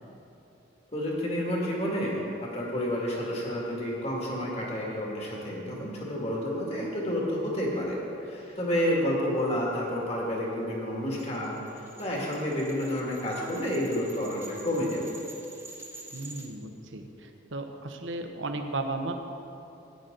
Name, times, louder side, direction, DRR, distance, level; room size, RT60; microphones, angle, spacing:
voice 1, 0.9-15.1, equal, 30° left, -4 dB, 2.2 m, -30 dB
sound 1, 11.1-16.5, right 2 dB, 10° right, 1.1 m, -47 dB
voice 2, 16.1-19.1, right 2 dB, 65° right, 5 dB, 1.0 m, -35 dB
15.5 x 9.6 x 3.9 m, 2.9 s
head